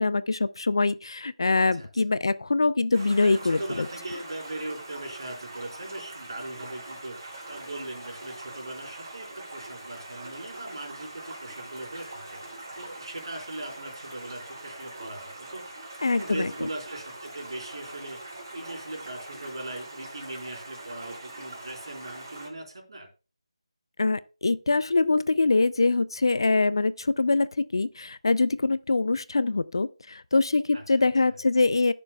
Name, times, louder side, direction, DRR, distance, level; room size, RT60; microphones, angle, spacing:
voice 1, 0.0-3.9 16.0-16.7 24.0-31.9, left 3 dB, 50° left, 0.4 m, -24 dB
voice 2, 1.6-1.9 3.2-7.2 7.5-15.6 16.0-18.2 18.5-23.1 30.7-31.1, right 2 dB, 50° right, 4.4 m, -39 dB
Stream, 2.9-22.5, right 2 dB, 35° right, 4.6 m, -42 dB
18.0 x 6.8 x 2.3 m
figure-of-eight pair, 160°, 3 cm